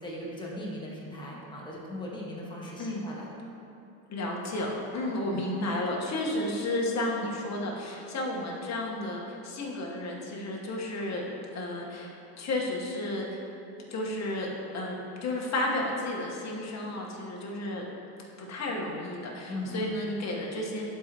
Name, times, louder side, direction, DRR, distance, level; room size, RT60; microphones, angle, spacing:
voice 1, 0.0-3.2 5.2-5.4 19.5-19.9, left 1 dB, 10° left, -4 dB, 1.5 m, -38 dB
voice 2, 4.1-11.2 11.5-13.4 13.9-17.8 18.4-20.9, left 1 dB, 35° left, -2 dB, 1.4 m, -32 dB
12.0 x 4.7 x 3.0 m, 2.8 s
supercardioid pair, 115°, 48 cm